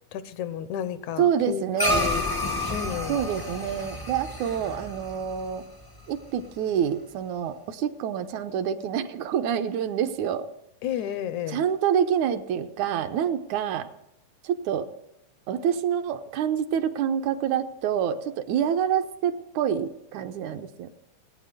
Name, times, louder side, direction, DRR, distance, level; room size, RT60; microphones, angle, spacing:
voice 1, 0.1-2.3 2.7-3.2 10.8-11.6, left 9 dB, 80° left, 13 dB, 2.1 m, -32 dB
voice 2, 1.2-2.1 3.1-5.7 6.1-10.5 11.5-13.9 14.4-14.9 15.5-20.9, right 8 dB, 75° right, 8 dB, 2.2 m, -27 dB
sound 1, 1.8-6.4, left 2 dB, 35° left, 0.3 m, -30 dB
18.5 x 9.4 x 6.7 m, 0.84 s
omnidirectional pair, 3.4 m